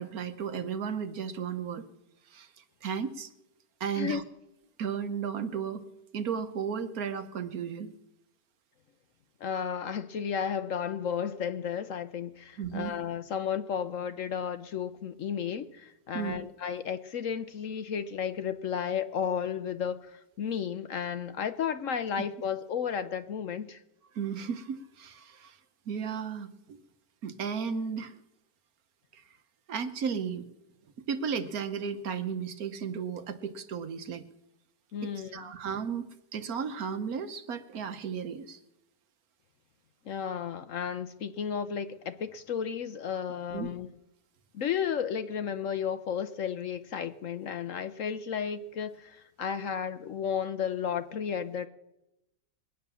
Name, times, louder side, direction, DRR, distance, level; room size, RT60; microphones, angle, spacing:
voice 1, 0.0-1.8 2.3-2.5 2.8-3.3 3.8-4.2 4.8-5.8 6.1-7.9 12.6-12.9 16.1-16.4 24.1-25.6 25.9-26.8 27.2-28.2 29.7-30.4 31.1-34.2 35.0-36.0 36.3-38.6 43.5-43.7, right 7 dB, 65° right, 9 dB, 1.4 m, -34 dB
voice 2, 9.4-23.8 34.9-35.4 40.1-43.9 44.5-51.7, left 7 dB, 60° left, 11 dB, 1.0 m, -33 dB
22.0 x 9.0 x 6.9 m, 0.91 s
omnidirectional pair, 1.7 m